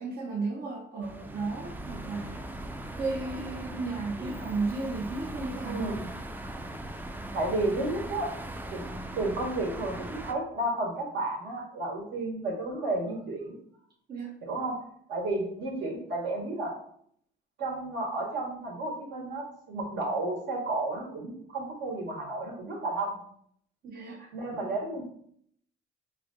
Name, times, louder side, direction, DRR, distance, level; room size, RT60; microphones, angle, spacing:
voice 1, 0.0-2.4 3.0-5.9 14.1-14.3 23.8-24.3, right 3 dB, 55° right, -2 dB, 0.6 m, -34 dB
sound 1, 1.0-10.3, right 1 dB, 10° right, 0.3 m, -39 dB
voice 2, 5.6-6.1 7.3-8.3 8.7-8.8 9.1-13.5 14.4-14.8 15.1-16.7 17.6-23.2 24.3-25.0, right 2 dB, 70° right, -2 dB, 1.3 m, -32 dB
3.2 x 2.6 x 3.7 m, 0.64 s
cardioid pair, 90°, 20 cm